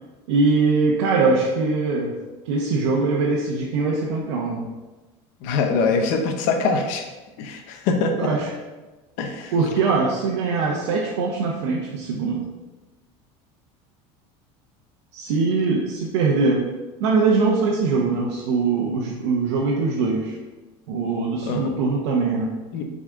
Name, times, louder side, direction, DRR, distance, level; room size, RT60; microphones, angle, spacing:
voice 1, 0.3-2.2 2.5-4.7 8.2-8.5 9.5-12.5 15.1-16.7 17.0-20.3 20.9-22.6, right 4 dB, 90° right, -2 dB, 1.0 m, -22 dB
voice 2, 5.4-7.0 7.4-8.3 9.2-9.5 21.4-21.7 22.7-22.9, left 4 dB, 70° left, 5 dB, 1.1 m, -23 dB
6.2 x 4.2 x 4.9 m, 1.2 s
supercardioid pair, 120°, 14 cm